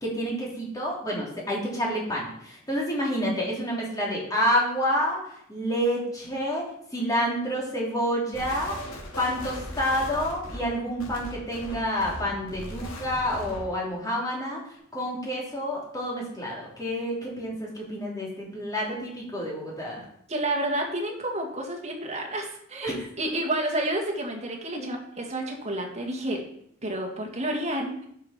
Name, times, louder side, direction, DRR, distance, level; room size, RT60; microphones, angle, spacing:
voice 1, 0.0-5.2 5.5-8.8 9.2-14.6 14.9-20.0 22.8-23.0 24.7-24.9, equal, 15° left, -4 dB, 3.4 m, -28 dB
sound 1, 8.3-13.8, equal, 90° left, 2.7 m, -39 dB
voice 2, 20.3-26.4 26.8-28.1, right 1 dB, 30° right, 1 dB, 1.9 m, -30 dB
11.0 x 6.6 x 4.4 m, 0.69 s
head